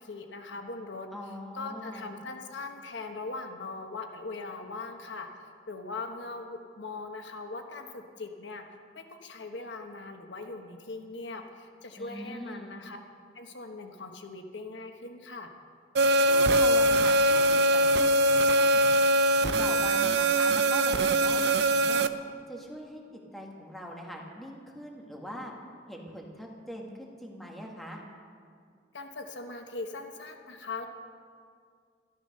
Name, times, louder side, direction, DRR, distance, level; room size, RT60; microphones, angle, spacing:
voice 1, 0.0-1.1 1.5-5.3 5.7-8.6 8.9-13.0 13.3-15.5 28.9-30.9, left 3 dB, 80° left, 5 dB, 1.2 m, -40 dB
voice 2, 1.1-2.1 12.0-12.8 16.2-18.8 19.6-22.1 22.5-25.5 25.9-28.0, equal, ahead, -1 dB, 1.7 m, -42 dB
sound 1, 15.9-22.1, right 1 dB, 65° right, 0.5 m, -22 dB
13.0 x 12.0 x 6.6 m, 2.2 s
head